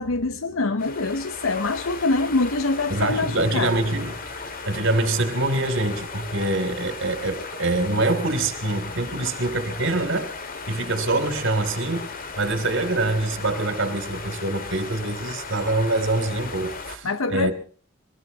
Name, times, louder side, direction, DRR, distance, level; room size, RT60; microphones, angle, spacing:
voice 1, 0.0-3.7 17.0-17.5, left 3 dB, 75° left, 0.9 m, -24 dB
sound 1, 0.8-17.0, left 4 dB, 45° left, 2.2 m, -36 dB
voice 2, 2.9-4.3 4.6-10.3 10.7-17.5, right 2 dB, 65° right, 3.1 m, -25 dB
23.0 x 19.5 x 3.0 m
head